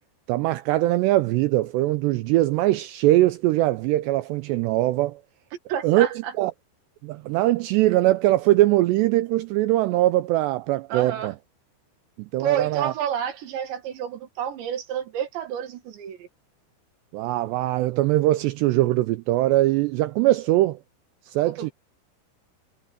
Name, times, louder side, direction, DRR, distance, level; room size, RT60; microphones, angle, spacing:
voice 1, 0.3-5.2 5.8-6.5 7.0-11.3 12.2-12.9 17.1-20.8 21.3-21.7, right 16 dB, 90° right, 2.5 m, -21 dB
voice 2, 5.7-6.3 10.9-11.3 12.4-16.3 21.4-21.7, right 9 dB, 70° right, 4.2 m, -30 dB
omnidirectional pair, 5.6 m